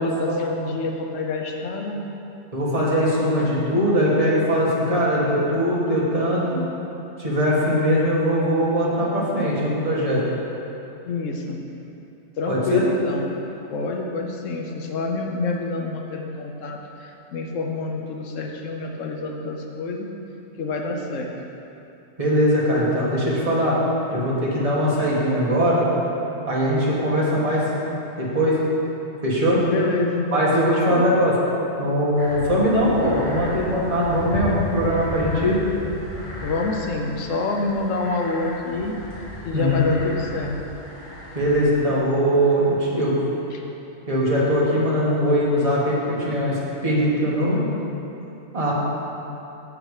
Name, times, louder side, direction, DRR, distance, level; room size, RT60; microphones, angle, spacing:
voice 1, 0.0-2.0 11.0-11.6 12.4-13.3 13.7-20.1 20.6-21.3 26.8-27.4 29.5-31.1 36.4-38.9 39.4-40.6 43.5-43.6, left 3 dB, 75° left, 1 dB, 1.1 m, -27 dB
voice 2, 2.5-6.6 7.2-10.2 12.5-12.9 22.2-23.8 24.1-25.9 26.5-27.6 28.2-28.6 29.2-29.6 30.3-31.3 31.8-35.6 39.5-39.8 41.3-43.1 44.1-47.7 48.5-48.7, equal, 30° right, -6 dB, 1.6 m, -21 dB
sound 1, 32.2-41.7, left 1 dB, 40° left, 1.5 m, -35 dB
7.3 x 7.0 x 4.8 m, 2.9 s
omnidirectional pair, 1.3 m